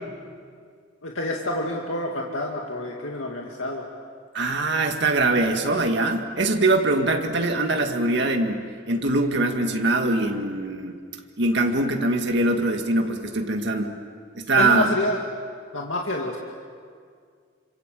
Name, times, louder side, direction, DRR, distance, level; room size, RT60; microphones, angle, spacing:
voice 1, 1.0-3.9 14.6-15.2 15.7-16.4, left 1 dB, 85° left, 0 dB, 2.2 m, -28 dB
voice 2, 4.3-10.9 11.4-13.9 14.3-14.9, right 2 dB, 60° right, 4 dB, 1.9 m, -22 dB
28.5 x 26.5 x 7.7 m, 2.1 s
head